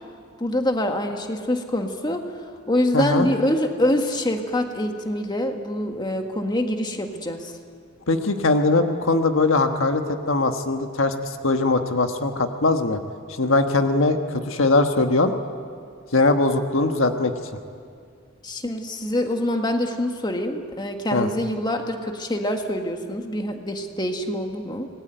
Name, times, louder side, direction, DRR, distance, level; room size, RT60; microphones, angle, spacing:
voice 1, 0.4-2.3 2.7-7.5 18.4-24.9, left 1 dB, 20° left, 4 dB, 1.7 m, -25 dB
voice 2, 2.9-3.3 8.1-13.0 13.4-15.3 16.1-17.3 21.1-21.3, left 2 dB, 70° left, 6 dB, 1.4 m, -21 dB
26.0 x 20.0 x 9.2 m, 2.2 s
head